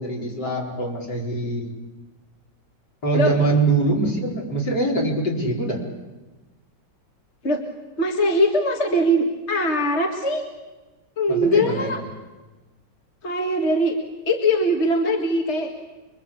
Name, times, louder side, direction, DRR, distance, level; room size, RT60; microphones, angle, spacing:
voice 1, 0.0-1.7 3.0-5.8 11.3-12.0, right 2 dB, 55° left, -1 dB, 4.9 m, -23 dB
voice 2, 8.0-10.4 11.2-12.0 13.2-14.0 14.3-15.7, equal, 35° left, 3 dB, 2.0 m, -21 dB
26.0 x 23.5 x 8.5 m, 1.2 s
omnidirectional pair, 2.2 m